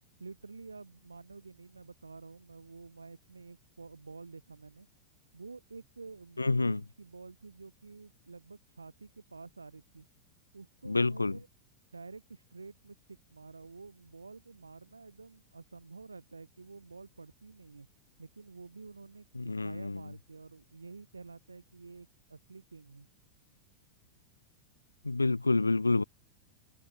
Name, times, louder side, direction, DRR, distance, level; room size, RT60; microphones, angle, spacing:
voice 1, 0.2-4.9 5.3-10.1 10.5-11.5 11.9-17.9 18.2-23.1, right 4 dB, 80° right, 5.7 m, -49 dB
voice 2, 6.4-6.8 10.8-11.4 19.4-20.0 25.0-26.0, left 3 dB, 80° left, 1.0 m, -28 dB
figure-of-eight pair, 90°, 0 cm